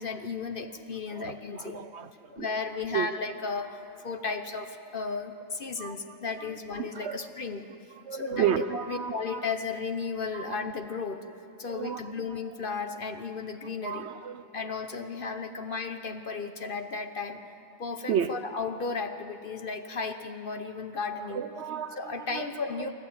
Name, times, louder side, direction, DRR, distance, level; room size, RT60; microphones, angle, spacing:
voice 1, 0.0-1.8 2.3-7.7 8.1-11.2 11.6-14.1 14.5-17.4 17.8-21.4 22.0-22.9, left 4 dB, 45° left, 7 dB, 1.1 m, -34 dB
voice 2, 1.1-2.5 2.9-3.1 5.8-6.0 6.4-7.2 8.0-9.5 10.3-10.7 11.7-12.0 12.3-12.4 13.8-14.4 18.1-18.3 21.2-22.9, right 8 dB, 60° right, 11 dB, 0.8 m, -33 dB
28.0 x 12.5 x 8.8 m, 3.0 s
omnidirectional pair, 1.4 m